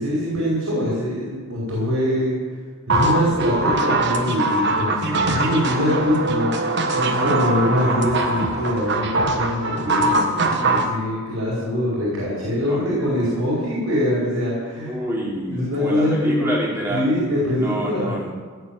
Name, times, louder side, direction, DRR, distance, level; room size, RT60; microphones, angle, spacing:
voice 1, 0.0-2.4 2.9-14.9 15.5-16.5 16.9-18.1, left 1 dB, 85° right, -5 dB, 5.2 m, -23 dB
sound 1, 2.9-10.9, right 2 dB, 55° right, 1.5 m, -22 dB
voice 2, 7.1-8.4 12.5-13.3 14.8-18.3, equal, 10° right, -5 dB, 4.1 m, -29 dB
17.0 x 7.0 x 9.0 m, 1.5 s
head